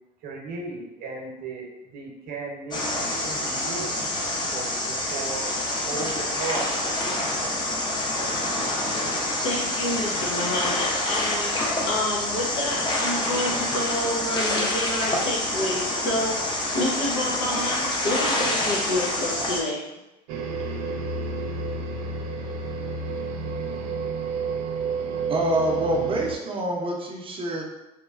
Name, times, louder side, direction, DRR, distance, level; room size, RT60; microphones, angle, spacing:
voice 1, 0.2-4.0 4.5-5.5 5.9-6.7 8.2-8.5, right 3 dB, 55° right, -1 dB, 0.8 m, -36 dB
sound 1, 2.7-19.6, left 1 dB, 25° left, 0.7 m, -27 dB
voice 2, 9.4-19.8, left 1 dB, 75° left, -3 dB, 0.8 m, -29 dB
sound 2, 20.3-26.4, right 4 dB, 85° right, 0.4 m, -30 dB
voice 3, 25.3-27.6, right 1 dB, 30° right, 0 dB, 0.6 m, -26 dB
3.0 x 2.1 x 2.4 m, 0.97 s
supercardioid pair, 80°, 19 cm